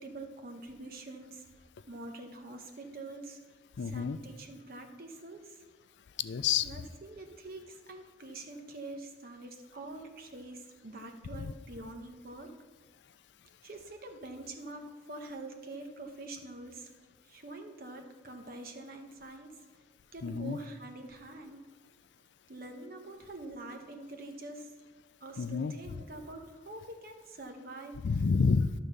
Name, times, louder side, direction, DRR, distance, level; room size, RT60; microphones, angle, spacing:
voice 1, 0.0-1.4 1.9-3.4 3.8-5.6 6.6-12.5 13.6-16.9 17.2-19.6 20.1-21.6 22.5-24.7 25.2-28.0, right 2 dB, 55° right, 4 dB, 1.0 m, -45 dB
voice 2, 3.8-4.2 6.2-6.7 11.4-11.5 20.2-20.6 25.4-25.7 28.0-28.7, left 5 dB, 85° left, 13 dB, 0.4 m, -29 dB
11.0 x 3.7 x 6.8 m, 1.3 s
head